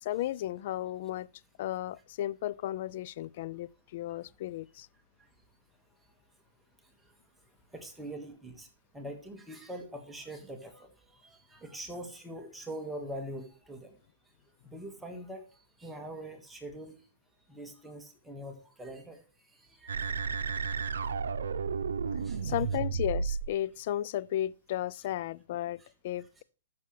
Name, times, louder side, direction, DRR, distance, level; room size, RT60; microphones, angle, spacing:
voice 1, 0.0-1.3 1.6-4.9 22.4-26.4, left 13 dB, 50° left, 0.3 m, -34 dB
voice 2, 6.8-7.1 7.7-8.7 8.9-14.0 14.6-17.0 17.5-19.9 22.2-22.4 25.8-25.9, right 1 dB, 5° right, 1.6 m, -43 dB
sound 1, 19.9-23.5, right 5 dB, 80° right, 0.7 m, -32 dB
13.5 x 6.5 x 3.2 m
hypercardioid pair, 130°, 0 cm